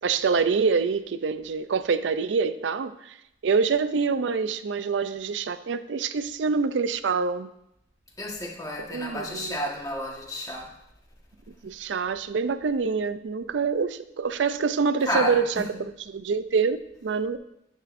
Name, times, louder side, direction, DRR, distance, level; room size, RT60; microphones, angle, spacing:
voice 1, 0.0-3.2 3.4-7.5 8.9-9.6 11.6-17.4, right 5 dB, 90° right, 13 dB, 0.4 m, -26 dB
voice 2, 8.2-10.7 15.0-15.7, equal, 20° left, -1 dB, 1.4 m, -31 dB
10.0 x 8.4 x 2.6 m, 0.82 s
head